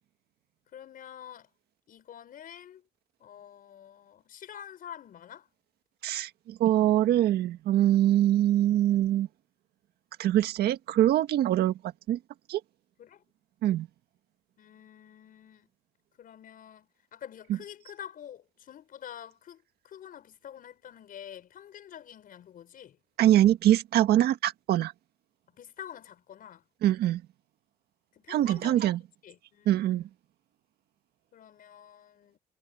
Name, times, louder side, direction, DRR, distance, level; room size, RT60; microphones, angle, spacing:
voice 1, 0.7-1.5 1.9-2.8 3.2-5.5 13.0-13.2 14.6-15.7 16.2-23.0 25.6-26.6 28.2-28.9 29.2-30.0 31.3-32.4, left 9 dB, 55° left, 5.8 m, -47 dB
voice 2, 6.0-9.3 10.2-11.7 12.1-12.2 12.5-12.6 13.6-13.9 23.2-24.9 26.8-27.2 28.3-29.0 29.7-30.0, right 12 dB, 70° right, 1.8 m, -23 dB
cardioid pair, 110°, 17 cm